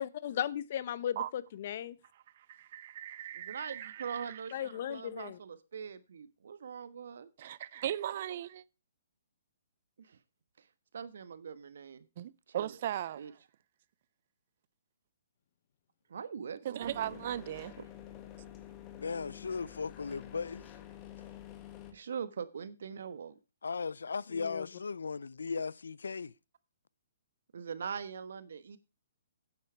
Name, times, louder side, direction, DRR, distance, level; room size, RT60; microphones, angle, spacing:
voice 1, 0.0-1.9 4.5-5.4 24.4-24.7, left 10 dB, 50° left, 0.8 m, -36 dB
voice 2, 2.5-4.4 7.4-8.6 12.2-13.4 16.6-17.7, right 11 dB, 50° right, 0.5 m, -38 dB
voice 3, 3.3-7.3 10.0-10.2 10.9-12.1 12.5-12.8 13.2-13.3 16.1-17.2 21.9-23.3 27.5-28.8, right 6 dB, 70° right, 1.2 m, -42 dB
sound 1, 16.8-21.9, left 12 dB, 25° left, 1.6 m, -49 dB
voice 4, 18.9-20.7 23.6-26.3, left 5 dB, 80° left, 0.5 m, -37 dB
9.5 x 8.3 x 4.5 m
hypercardioid pair, 140°, 0 cm